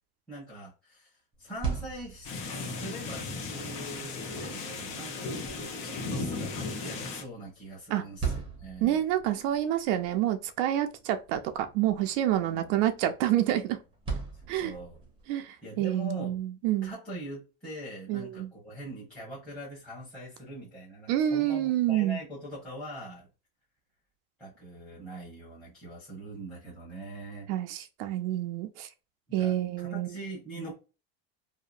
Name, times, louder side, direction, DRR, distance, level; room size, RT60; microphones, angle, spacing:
voice 1, 0.3-9.0 12.5-12.7 14.3-15.0 15.6-16.4 16.8-23.3 24.4-27.5 29.4-30.7, right 1 dB, 5° left, 1.1 m, -42 dB
sound 1, 1.3-15.3, right 5 dB, 15° right, 0.7 m, -42 dB
sound 2, 2.2-7.2, left 3 dB, 50° left, 0.8 m, -36 dB
voice 2, 8.8-13.8 14.5-14.7 15.3-16.9 18.1-18.5 21.1-22.2 27.5-28.9 29.3-30.1, right 12 dB, 80° right, 0.5 m, -28 dB
2.8 x 2.1 x 2.4 m
cardioid pair, 155°, 37 cm